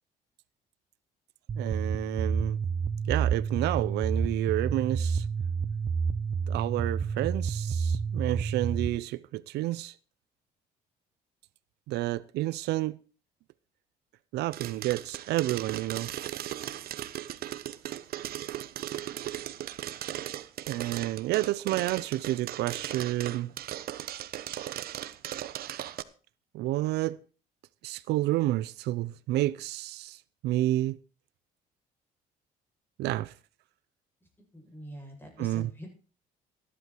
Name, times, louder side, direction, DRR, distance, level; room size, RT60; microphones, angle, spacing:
sound 1, 1.5-8.9, right 6 dB, 35° right, 0.9 m, -29 dB
voice 1, 1.6-2.6 3.1-5.3 6.5-9.9 11.9-13.0 14.3-16.1 20.7-23.5 26.5-27.2 27.8-31.0 33.0-33.3 35.4-35.7, right 16 dB, 80° right, 0.6 m, -30 dB
sound 2, 14.5-26.0, right 12 dB, 65° right, 1.0 m, -37 dB
voice 2, 34.5-35.9, equal, 10° left, 8.0 m, -44 dB
14.5 x 11.5 x 4.5 m
cardioid pair, 110°, 17 cm